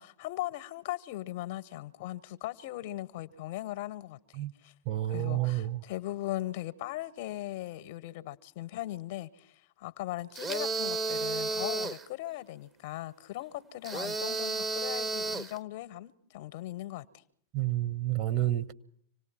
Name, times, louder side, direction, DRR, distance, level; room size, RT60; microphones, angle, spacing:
voice 1, 0.0-4.7 5.1-17.2, left 15 dB, 50° left, 0.9 m, -39 dB
voice 2, 4.8-5.8 17.5-18.7, right 14 dB, 40° right, 1.2 m, -30 dB
sound 1, 10.4-12.1 13.8-15.6, right 3 dB, 20° right, 0.8 m, -32 dB
25.5 x 18.5 x 6.2 m
figure-of-eight pair, 90°, 0 cm